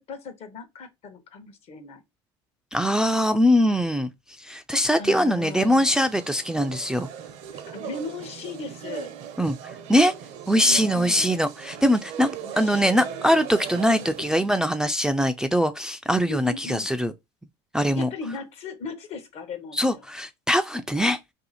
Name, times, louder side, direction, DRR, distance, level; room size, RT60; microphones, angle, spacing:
voice 1, 0.1-2.0 5.0-6.0 7.5-9.1 10.5-11.3 12.4-13.2 13.7-14.2 16.3-16.9 17.9-20.0, left 3 dB, 55° left, 0.9 m, -37 dB
voice 2, 2.7-4.1 4.4-7.1 9.4-9.6 9.9-10.1 10.5-12.3 12.6-17.1 17.7-18.1 19.8-21.2, equal, 5° right, 0.3 m, -22 dB
sound 1, 5.3-14.5, right 8 dB, 70° right, 0.7 m, -39 dB
2.7 x 2.4 x 4.1 m
supercardioid pair, 85°, 13 cm